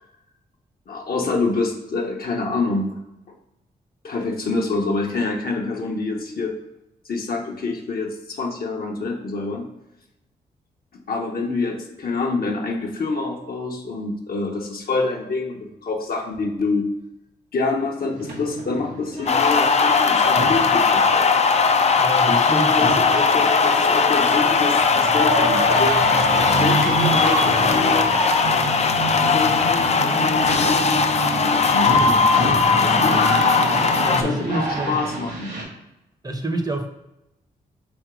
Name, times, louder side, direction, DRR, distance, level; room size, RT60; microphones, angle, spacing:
voice 1, 0.9-3.0 4.0-6.5 7.1-9.7 11.1-16.9 17.5-21.3 22.3-25.9 26.6-28.1 29.1-31.0 31.4-33.2 34.1-35.5, left 3 dB, 55° left, 1 dB, 0.9 m, -26 dB
sound 1, 18.1-35.6, right 2 dB, 70° right, 1.4 m, -28 dB
sound 2, 19.3-34.2, left 5 dB, 35° left, 0.4 m, -18 dB
voice 2, 22.0-22.8 34.0-35.0 36.2-36.9, right 2 dB, 20° right, 4 dB, 0.7 m, -27 dB
3.5 x 2.9 x 4.8 m, 0.91 s
supercardioid pair, 45°, 18 cm